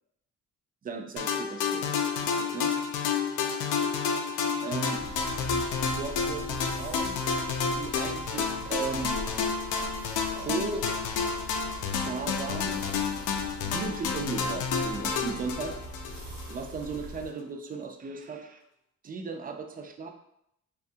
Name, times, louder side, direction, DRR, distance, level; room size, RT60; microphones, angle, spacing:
voice 1, 0.8-1.8 2.2-2.7 4.6-5.0 6.0-7.2 7.6-9.2 10.3-10.9 11.9-12.9 13.6-15.7 16.5-18.6 19.0-20.1, right 4 dB, 30° right, 3 dB, 0.4 m, -36 dB
sound 1, 1.2-16.6, left 5 dB, 80° left, 0.4 m, -30 dB
sound 2, 4.9-17.3, left 1 dB, 65° right, 1.1 m, -43 dB
2.6 x 2.4 x 2.6 m, 0.77 s
cardioid pair, 90°, 30 cm